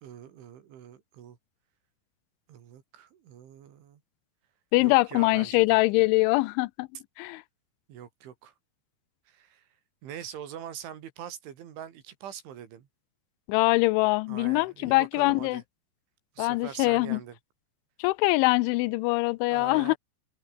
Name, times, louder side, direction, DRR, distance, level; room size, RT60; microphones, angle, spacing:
voice 1, 0.0-1.4 2.5-4.0 4.8-5.8 7.9-8.6 9.3-9.7 10.0-12.9 14.3-15.6 16.4-17.4 19.5-20.0, right 10 dB, 80° right, 5.3 m, -43 dB
voice 2, 4.7-6.9 7.2-7.4 13.5-15.6 16.4-17.2 18.0-19.9, left 23 dB, 85° left, 3.0 m, -23 dB
omnidirectional pair, 5.4 m